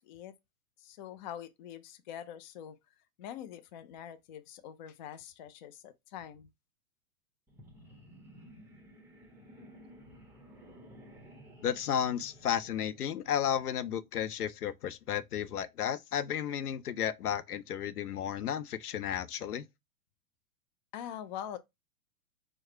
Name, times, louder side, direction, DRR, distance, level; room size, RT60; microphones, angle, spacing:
voice 1, 0.0-0.3 0.8-2.8 3.2-6.5 20.9-21.6, left 10 dB, 35° left, 0.4 m, -44 dB
sound 1, 7.5-13.7, equal, 5° right, 1.0 m, -54 dB
voice 2, 11.6-19.6, left 9 dB, 75° left, 0.7 m, -33 dB
4.7 x 2.2 x 4.3 m
hypercardioid pair, 110°, 45 cm